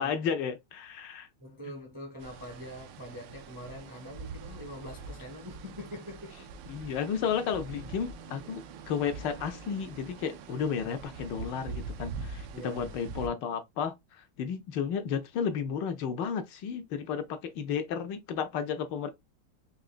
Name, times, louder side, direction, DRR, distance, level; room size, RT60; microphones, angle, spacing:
voice 1, 0.0-1.3 6.7-19.1, left 7 dB, 75° left, 1.2 m, -33 dB
voice 2, 1.4-6.5 12.5-13.0, equal, 20° right, 0.6 m, -44 dB
sound 1, 2.2-13.3, right 4 dB, 75° right, 1.2 m, -44 dB
4.9 x 2.8 x 2.4 m
omnidirectional pair, 2.2 m